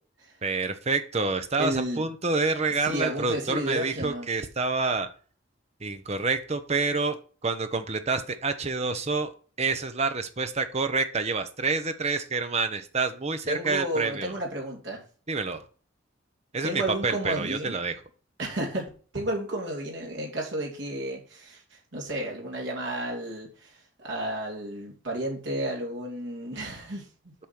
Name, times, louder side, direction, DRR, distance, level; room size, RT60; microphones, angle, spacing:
voice 1, 0.4-5.1 5.8-7.2 7.4-9.3 9.6-14.4 15.3-15.6 16.5-18.0, right 4 dB, 35° right, 9 dB, 1.0 m, -28 dB
voice 2, 1.6-2.1 2.8-4.3 13.5-15.0 16.6-17.7 18.4-21.6 21.9-23.7 24.0-27.1, right 1 dB, 75° right, -1 dB, 3.0 m, -32 dB
8.5 x 5.0 x 6.0 m, 0.40 s
head